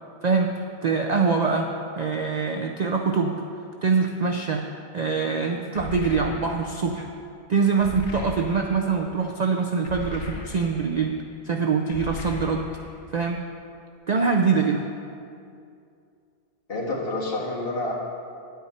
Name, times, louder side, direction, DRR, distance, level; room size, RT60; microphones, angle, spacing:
voice 1, 0.8-1.7 2.0-3.4 3.8-4.7 4.9-7.1 7.5-11.1 11.4-12.7 13.1-13.4 14.1-14.8, right 5 dB, 55° right, 2 dB, 0.5 m, -24 dB
sound 1, 5.7-6.8 7.8-8.9 9.8-10.9 11.9-13.0, left 4 dB, 75° left, 1.2 m, -37 dB
voice 2, 16.7-17.9, left 2 dB, 50° left, -4 dB, 1.8 m, -28 dB
9.5 x 9.4 x 4.3 m, 2.5 s
omnidirectional pair, 1.2 m